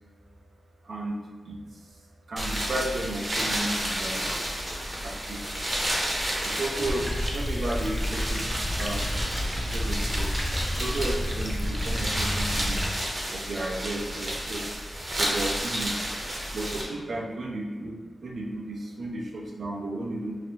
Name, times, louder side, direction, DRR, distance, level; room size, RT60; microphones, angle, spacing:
voice 1, 0.8-2.0 2.3-4.6 5.0-5.4 6.4-8.5 8.8-9.1 9.7-10.3 10.8-12.9 13.3-14.8 15.2-16.0 16.5-20.4, right 1 dB, 70° right, 0 dB, 0.5 m, -33 dB
sound 1, 2.4-16.8, equal, 35° right, 0.8 m, -31 dB
sound 2, 6.8-12.9, equal, 10° right, 0.5 m, -30 dB
3.0 x 2.5 x 2.7 m, 1.4 s
cardioid pair, 65°, 0 cm